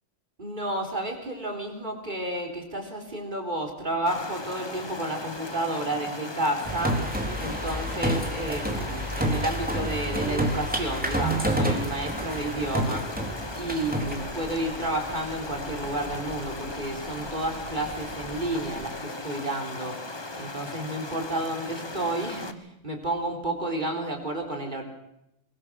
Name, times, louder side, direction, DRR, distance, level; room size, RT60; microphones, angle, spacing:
voice 1, 0.4-24.8, right 1 dB, 40° right, 2 dB, 4.3 m, -31 dB
Stream, 4.1-22.5, left 2 dB, 20° left, 1.3 m, -38 dB
sound 1, 6.6-14.4, right 1 dB, 5° right, 3.6 m, -29 dB
sound 2, 13.8-18.9, right 1 dB, 70° right, 7.7 m, -43 dB
22.5 x 21.5 x 6.4 m, 0.84 s
omnidirectional pair, 1.3 m